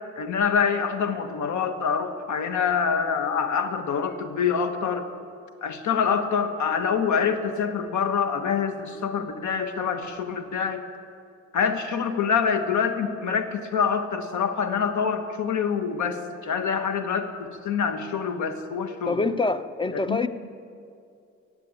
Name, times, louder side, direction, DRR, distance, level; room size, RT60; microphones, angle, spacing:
voice 1, 0.2-5.1 5.6-10.8 11.5-17.3 17.6-19.1 20.1-20.3, left 6 dB, 75° left, 8 dB, 1.4 m, -25 dB
voice 2, 19.1-20.3, left 3 dB, 15° left, 12 dB, 0.6 m, -25 dB
15.5 x 8.2 x 9.0 m, 2.5 s
cardioid pair, 90°, 30 cm